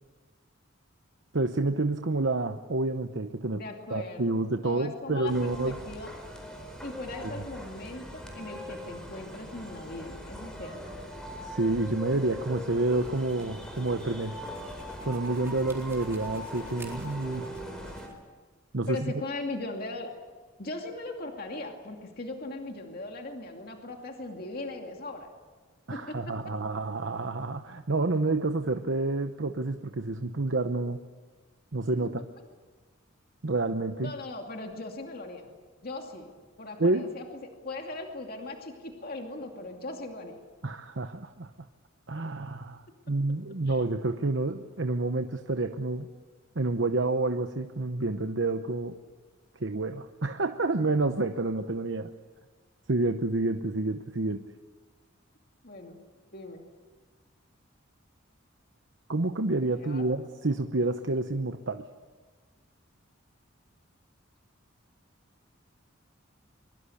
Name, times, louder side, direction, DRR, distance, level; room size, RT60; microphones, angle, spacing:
voice 1, 1.3-3.6 3.9-5.8 11.4-14.5 15.0-17.5 18.7-19.1 25.9-31.0 31.7-32.2 33.4-34.1 36.8-37.1 40.6-41.5 42.1-46.1 46.5-48.9 49.6-52.1 52.9-54.4 59.1-61.8, right 2 dB, 65° right, 6 dB, 1.0 m, -29 dB
voice 2, 3.5-6.1 6.8-10.8 18.9-20.1 20.6-25.3 25.9-26.3 34.0-35.5 35.8-36.3 36.6-40.4 43.7-43.8 55.6-56.0 56.3-56.6 59.8-60.1, left 2 dB, 50° left, 2 dB, 2.4 m, -39 dB
sound 1, 5.3-18.1, equal, 5° left, 4.5 m, -41 dB
sound 2, 12.9-18.2, right 1 dB, 10° right, 4.1 m, -51 dB
23.5 x 23.0 x 8.5 m, 1.4 s
head